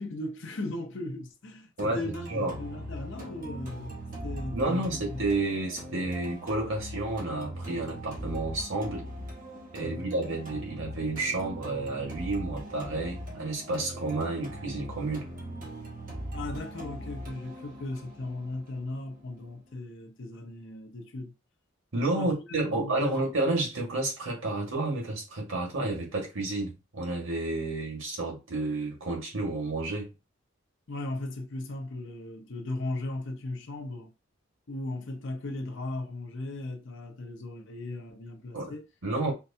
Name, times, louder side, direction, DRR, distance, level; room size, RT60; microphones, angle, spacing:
voice 1, 0.0-3.9 4.2-5.3 9.8-10.1 16.3-21.3 22.2-23.3 30.9-34.1 34.7-38.9 39.2-39.3, left 2 dB, 65° left, 0.7 m, -37 dB
sound 1, 1.8-19.8, right 1 dB, 45° right, 1.3 m, -40 dB
voice 2, 4.5-9.0 9.7-15.3 21.9-30.1 38.5-38.7 39.0-39.3, right 2 dB, 80° right, 1.5 m, -30 dB
4.5 x 2.2 x 2.7 m
head